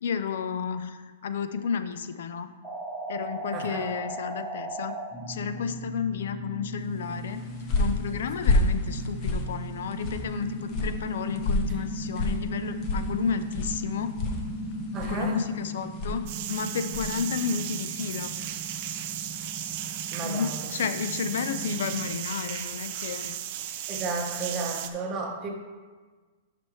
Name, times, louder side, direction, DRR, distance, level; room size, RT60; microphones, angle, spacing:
voice 1, 0.0-2.5 3.1-4.9 5.3-7.4 7.8-14.1 15.1-18.3 20.2-23.4, left 6 dB, 70° left, 10 dB, 0.5 m, -32 dB
sound 1, 2.6-22.1, right 1 dB, ahead, 1.6 m, -37 dB
voice 2, 3.5-3.8 14.9-15.4 20.1-20.7 23.9-25.5, right 3 dB, 25° right, 0 dB, 1.1 m, -33 dB
sound 2, 7.1-17.2, left 2 dB, 30° left, 0.9 m, -30 dB
sound 3, 16.3-24.9, right 11 dB, 40° right, 0.5 m, -35 dB
9.4 x 6.0 x 3.2 m, 1.4 s
hypercardioid pair, 160°, 0 cm